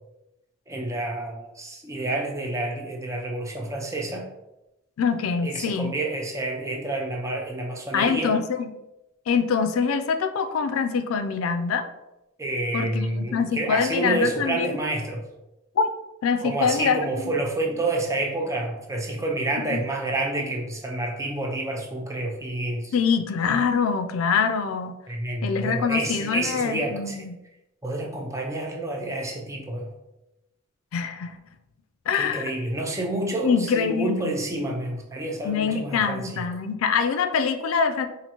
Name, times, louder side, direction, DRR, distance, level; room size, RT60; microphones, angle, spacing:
voice 1, 0.7-4.3 5.4-8.4 12.4-15.2 16.4-23.0 25.1-27.2 27.8-29.9 32.1-36.4, right 2 dB, 15° right, 0 dB, 0.5 m, -29 dB
voice 2, 5.0-5.9 7.9-8.7 9.3-11.9 12.7-14.8 15.8-15.9 16.2-17.3 19.7-19.8 22.9-25.0 25.4-27.3 30.9-31.3 32.1-32.5 33.4-34.3 35.4-38.1, left 6 dB, 90° left, 9 dB, 0.4 m, -24 dB
4.2 x 2.6 x 2.9 m, 0.94 s
head